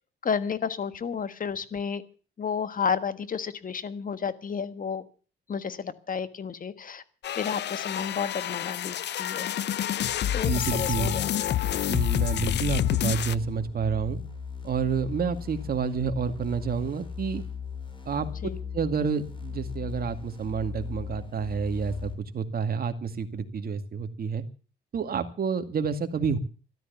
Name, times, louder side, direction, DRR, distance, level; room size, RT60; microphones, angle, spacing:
voice 1, 0.2-2.0 2.4-5.0 5.5-7.0 7.4-9.6 10.3-11.6 18.4-18.6, left 6 dB, 45° left, 13 dB, 1.5 m, -31 dB
sound 1, 7.2-13.4, left 11 dB, 60° left, 0.6 m, -28 dB
voice 2, 10.5-11.1 11.9-14.2 14.6-17.4 18.1-18.3 18.7-24.4 24.9-26.4, right 6 dB, 50° right, 7 dB, 2.2 m, -29 dB
sound 2, 10.9-22.1, left 6 dB, 25° left, 5.1 m, -38 dB
14.0 x 12.5 x 6.9 m, 0.38 s
cardioid pair, 90°, 20 cm